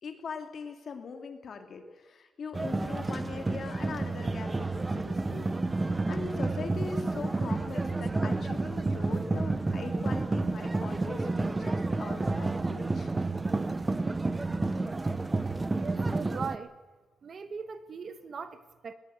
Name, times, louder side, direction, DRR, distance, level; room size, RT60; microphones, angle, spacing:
voice 1, 0.0-13.1, left 5 dB, 45° left, 2.5 m, -41 dB
sound 1, 2.5-16.6, right 3 dB, 15° right, 0.8 m, -30 dB
voice 2, 15.8-16.7 17.2-18.9, right 5 dB, 40° right, 1.2 m, -39 dB
21.0 x 20.0 x 8.1 m
wide cardioid pair, 160°, 0 cm